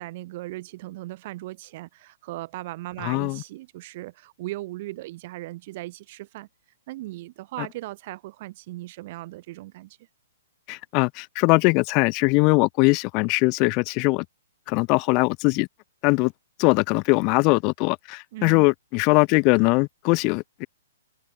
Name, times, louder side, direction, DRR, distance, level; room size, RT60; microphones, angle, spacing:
voice 1, 0.0-6.5 6.9-10.0 18.3-18.7, right 18 dB, 40° right, 2.2 m, -37 dB
voice 2, 3.0-3.4 7.6-7.7 10.7-14.2 14.7-15.7 16.0-16.3 16.6-20.7, left 30 dB, 30° left, 0.4 m, -21 dB
open air
hypercardioid pair, 150°, 0 cm